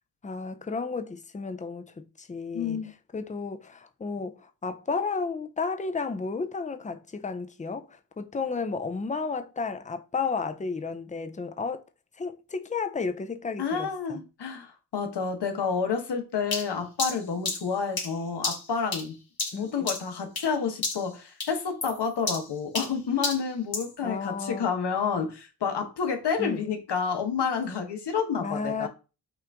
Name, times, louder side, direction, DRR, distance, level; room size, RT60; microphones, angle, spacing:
voice 1, 0.2-11.8 12.2-14.2 19.5-19.9 24.0-24.7 26.4-26.6 28.4-28.9, left 4 dB, 20° left, 0.5 m, -33 dB
voice 2, 2.5-2.9 13.6-19.1 19.5-28.9, left 6 dB, 80° left, 1.1 m, -29 dB
sound 1, 16.5-20.6 20.8-21.1 21.4-23.9, left 3 dB, 60° left, 2.1 m, -32 dB
5.8 x 2.6 x 3.5 m
cardioid pair, 65°, 40 cm